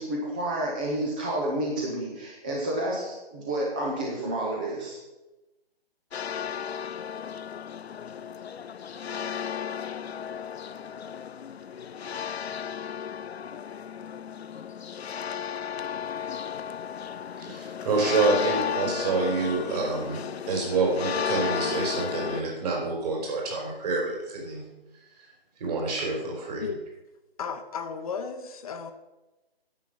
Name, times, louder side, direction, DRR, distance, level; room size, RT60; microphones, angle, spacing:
voice 1, 0.0-5.0, right 1 dB, 10° right, -2 dB, 0.5 m, -30 dB
sound 1, 6.1-22.4, left 8 dB, 85° left, 0.5 m, -34 dB
voice 2, 17.4-20.2 20.5-24.6 25.2-25.3 25.6-26.6, right 3 dB, 40° right, -2 dB, 4.4 m, -27 dB
voice 3, 27.4-28.9, left 6 dB, 35° left, 7 dB, 0.8 m, -34 dB
9.6 x 8.2 x 5.7 m, 1.0 s
figure-of-eight pair, 150°, 31 cm